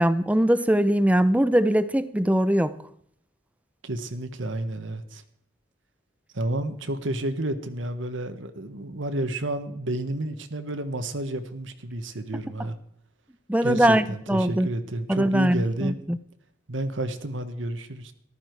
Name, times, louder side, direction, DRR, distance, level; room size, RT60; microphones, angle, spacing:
voice 1, 0.0-2.7 13.5-14.7 15.1-16.2, right 1 dB, 5° right, 0.6 m, -21 dB
voice 2, 3.8-5.2 6.3-12.8 13.6-16.0 16.7-18.1, right 1 dB, 90° right, 1.4 m, -30 dB
14.0 x 12.5 x 4.7 m
head